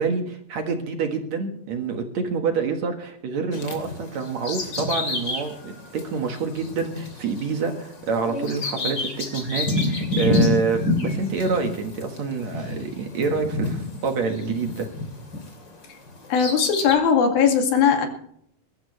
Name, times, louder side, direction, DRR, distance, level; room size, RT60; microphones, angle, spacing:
voice 1, 0.0-14.9, right 5 dB, 55° right, 4 dB, 2.5 m, -27 dB
Bird vocalization bird call bird song, 3.5-15.6 16.1-17.0, left 2 dB, 30° left, 3.2 m, -28 dB
voice 2, 16.3-18.1, left 7 dB, 80° left, 3 dB, 4.1 m, -19 dB
22.0 x 13.0 x 3.2 m, 0.69 s
omnidirectional pair, 4.2 m